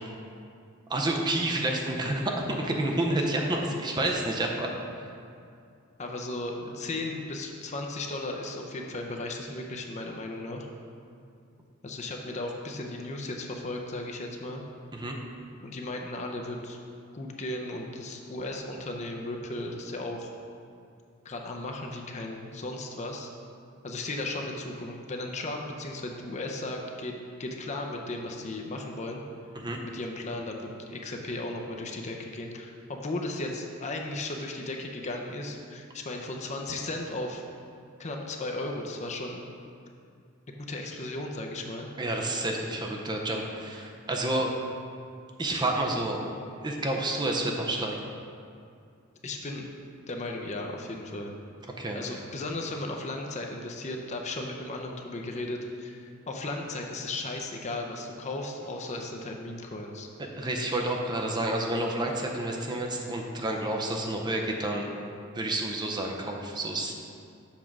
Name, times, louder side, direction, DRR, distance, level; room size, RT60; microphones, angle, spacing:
voice 1, 0.9-4.7 5.0-5.1 14.9-15.2 29.6-29.8 42.0-44.5 45.4-46.2 46.6-48.0 51.8-52.0 60.4-64.9 65.3-66.9, right 1 dB, 20° right, 1 dB, 0.6 m, -29 dB
voice 2, 6.0-10.7 11.8-14.6 15.6-16.8 17.1-20.3 21.2-23.3 23.8-27.1 27.4-29.2 29.8-37.4 38.0-39.5 40.7-41.9 49.2-49.7 50.1-51.3 51.9-60.1, left 2 dB, 35° left, 1 dB, 0.6 m, -35 dB
7.2 x 3.7 x 5.9 m, 2.4 s
head